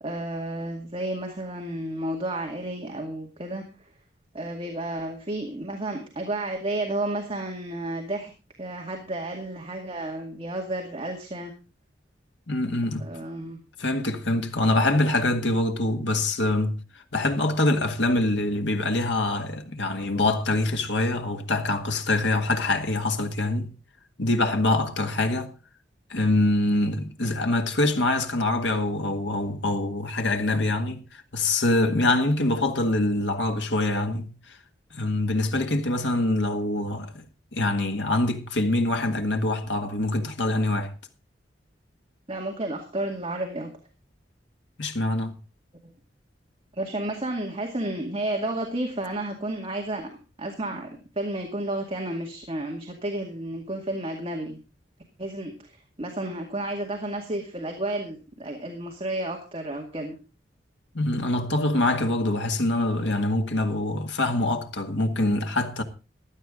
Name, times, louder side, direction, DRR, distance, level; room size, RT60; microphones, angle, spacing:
voice 1, 0.0-3.6 4.3-8.3 8.6-11.5 13.0-13.6 42.3-43.7 46.7-50.1 50.4-50.9 51.2-54.6 55.2-60.2, right 1 dB, 30° right, 2.2 m, -31 dB
voice 2, 12.5-13.1 13.8-16.8 17.1-23.7 24.2-25.5 26.1-34.3 34.9-37.3 37.5-40.9 44.8-45.4 60.9-65.8, left 2 dB, 85° left, 1.8 m, -24 dB
15.5 x 11.5 x 3.8 m
head